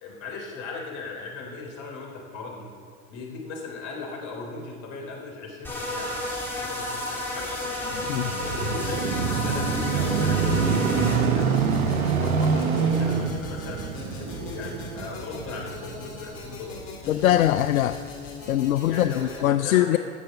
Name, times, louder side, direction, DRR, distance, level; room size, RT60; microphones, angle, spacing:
voice 1, 0.0-2.7 3.1-7.6 8.4-11.6 12.0-13.9 14.2-17.4 18.8-20.0, left 3 dB, 45° left, 0 dB, 3.6 m, -38 dB
sound 1, 5.6-11.2, left 1 dB, 5° left, 3.3 m, -31 dB
sound 2, 7.8-19.4, left 3 dB, 65° left, 2.9 m, -40 dB
sound 3, 7.9-16.7 17.3-17.4, right 6 dB, 80° right, 1.1 m, -26 dB
voice 2, 17.1-18.0 18.5-20.0, left 13 dB, 80° left, 11 dB, 0.5 m, -22 dB
15.5 x 6.8 x 6.5 m, 2.2 s
hypercardioid pair, 90°, 42 cm